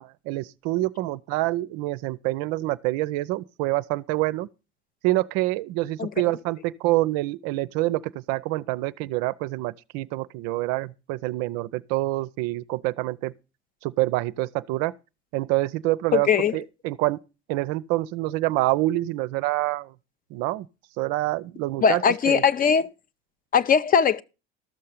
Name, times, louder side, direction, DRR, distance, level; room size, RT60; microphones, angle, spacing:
voice 1, 0.0-4.5 5.0-13.3 13.8-14.9 15.3-17.2 17.5-19.9 20.3-20.7 21.0-22.4, right 18 dB, 55° right, 0.5 m, -26 dB
voice 2, 16.1-16.6 21.8-22.9 23.5-24.2, left 7 dB, 25° left, 0.5 m, -20 dB
13.5 x 6.5 x 5.6 m
figure-of-eight pair, 70°, 32 cm